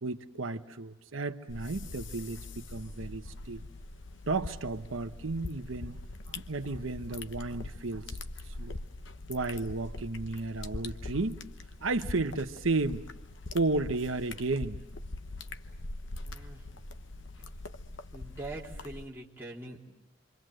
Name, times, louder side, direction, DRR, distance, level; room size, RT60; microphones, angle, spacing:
voice 1, 0.0-3.7 4.3-6.0 6.3-8.2 8.4-8.8 9.3-11.4 11.8-13.0 13.5-14.8, right 3 dB, 90° right, 8 dB, 1.0 m, -33 dB
sound 1, 1.5-19.0, left 2 dB, 70° left, 1.0 m, -43 dB
voice 2, 16.2-16.7 18.1-19.8, right 2 dB, 10° right, -3 dB, 3.2 m, -43 dB
27.5 x 24.5 x 7.7 m, 0.92 s
head